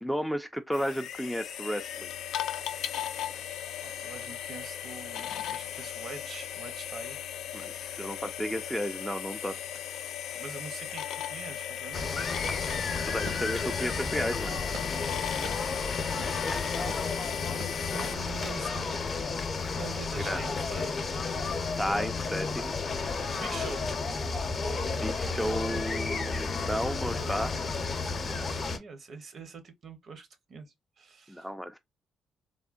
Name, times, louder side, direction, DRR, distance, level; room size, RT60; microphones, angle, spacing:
voice 1, 0.0-2.1 7.5-9.6 12.4-12.6 13.1-14.6 20.2-20.4 21.8-22.7 25.0-27.5 31.3-31.8, equal, ahead, 0.3 m, -33 dB
sound 1, 0.7-18.2, left 10 dB, 80° left, 0.3 m, -37 dB
voice 2, 3.8-7.2 10.3-12.9 13.8-14.2 17.9-19.1 19.8-20.9 23.3-24.1 27.2-27.4 28.0-31.5, right 4 dB, 55° right, 0.7 m, -45 dB
sound 2, 11.9-28.8, left 4 dB, 45° left, 0.7 m, -32 dB
sound 3, 14.7-14.9 15.4-15.6 16.2-16.3 16.9-17.0 17.6-17.7, right 3 dB, 80° right, 1.1 m, -46 dB
3.4 x 2.1 x 2.4 m
cardioid pair, 90°, 0 cm